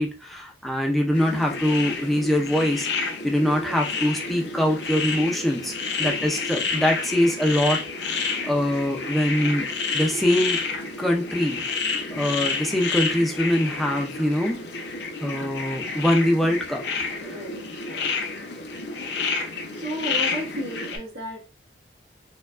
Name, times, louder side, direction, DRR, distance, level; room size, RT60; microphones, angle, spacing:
voice 1, 0.0-2.9 3.2-5.7 6.0-9.7 9.9-10.6 11.0-11.6 12.1-14.6 15.2-16.8, left 1 dB, ahead, 0 dB, 0.5 m, -23 dB
sound 1, 1.1-21.0, left 4 dB, 70° left, 0.6 m, -30 dB
voice 2, 3.5-3.8 6.0-6.4 17.2-18.2 19.7-21.6, right 1 dB, 85° right, -8 dB, 1.2 m, -34 dB
4.4 x 2.2 x 2.4 m, 0.31 s
head